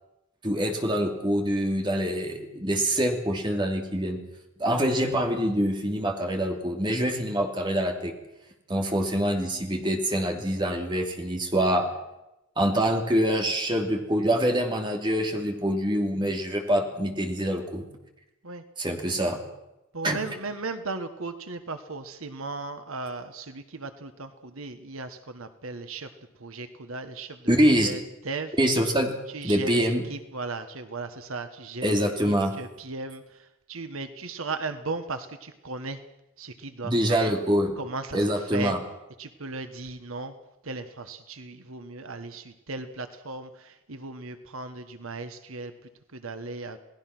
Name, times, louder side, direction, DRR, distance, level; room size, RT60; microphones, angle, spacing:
voice 1, 0.4-4.2 4.6-8.1 8.7-11.9 12.6-17.8 18.8-19.4 20.0-20.2 27.5-27.9 28.6-29.1 29.4-30.0 31.8-32.5 36.8-37.7 38.1-38.8, equal, 20° right, 2 dB, 2.8 m, -25 dB
voice 2, 19.9-26.1 26.4-27.5 27.8-28.6 29.3-36.0 36.4-37.4 37.8-38.8 39.2-40.3 40.6-46.8, right 3 dB, 80° right, 9 dB, 1.4 m, -36 dB
28.5 x 18.5 x 6.1 m, 0.93 s
head